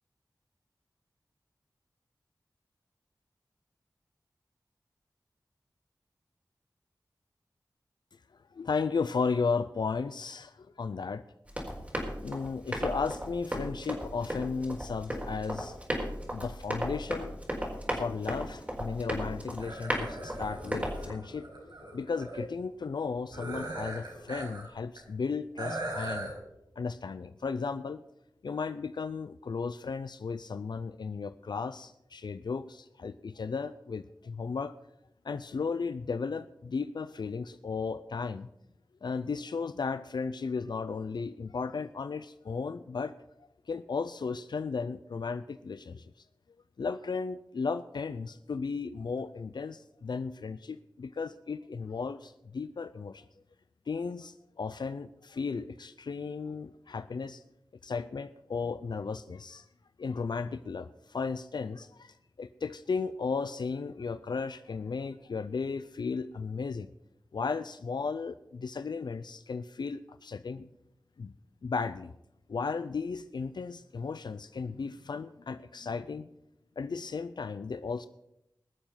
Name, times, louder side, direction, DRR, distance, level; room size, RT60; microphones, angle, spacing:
voice 1, 8.5-11.2 12.2-15.8 16.3-17.3 17.9-26.3 26.8-28.0 28.4-34.7 35.2-38.5 39.0-46.1 46.8-53.2 53.9-57.4 57.8-59.7 60.0-66.9 67.3-70.7 71.2-71.3 71.6-72.1 72.5-76.3 76.8-78.1, left 5 dB, 70° left, 13 dB, 0.5 m, -35 dB
Run, 11.5-21.1, equal, 20° right, 4.4 m, -35 dB
sound 1, 19.6-22.4 23.3-24.7 25.0-25.1 25.6-26.3, right 1 dB, 80° right, 5.3 m, -39 dB
21.0 x 7.1 x 5.7 m, 0.84 s
wide cardioid pair, 80°, 8 cm